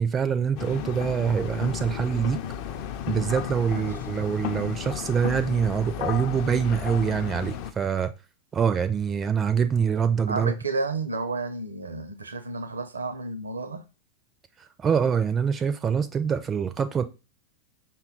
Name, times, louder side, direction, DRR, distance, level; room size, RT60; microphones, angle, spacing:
voice 1, 0.0-2.4 3.1-8.1 8.5-10.5 14.8-17.0, right 7 dB, 20° right, 0.4 m, -25 dB
sound 1, 0.6-7.7, left 9 dB, 45° left, 0.4 m, -33 dB
voice 2, 10.3-13.8, right 3 dB, 75° right, 0.6 m, -31 dB
5.5 x 2.3 x 3.7 m
figure-of-eight pair, 90°, 0 cm